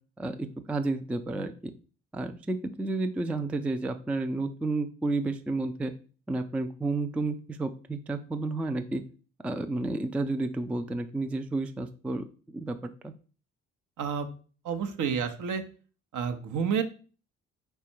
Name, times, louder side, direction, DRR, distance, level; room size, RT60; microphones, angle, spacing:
voice 1, 0.2-1.7 2.1-5.9 6.3-9.0 9.4-12.2 12.5-13.1, right 2 dB, 5° right, 8 dB, 0.3 m, -31 dB
voice 2, 14.0-14.3 14.6-15.6 16.1-16.8, right 7 dB, 60° right, 7 dB, 0.8 m, -29 dB
4.3 x 2.3 x 4.3 m, 0.38 s
hypercardioid pair, 55°, 35 cm